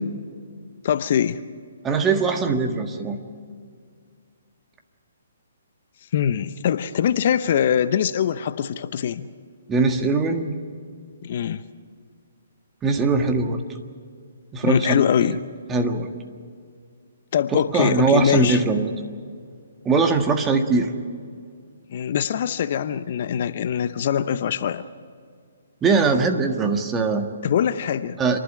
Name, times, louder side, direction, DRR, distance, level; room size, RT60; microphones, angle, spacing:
voice 1, 0.8-1.4 6.1-9.3 11.2-11.6 14.6-15.4 17.3-18.6 21.9-24.8 27.4-28.2, left 9 dB, 50° left, 12 dB, 0.7 m, -23 dB
voice 2, 1.8-3.2 9.7-10.6 12.8-13.6 14.5-15.0 15.7-16.1 17.5-18.9 19.8-20.9 25.8-27.3 28.2-28.4, right 4 dB, 15° right, 5 dB, 1.6 m, -21 dB
28.0 x 12.0 x 9.8 m, 2.1 s
figure-of-eight pair, 135°, 0 cm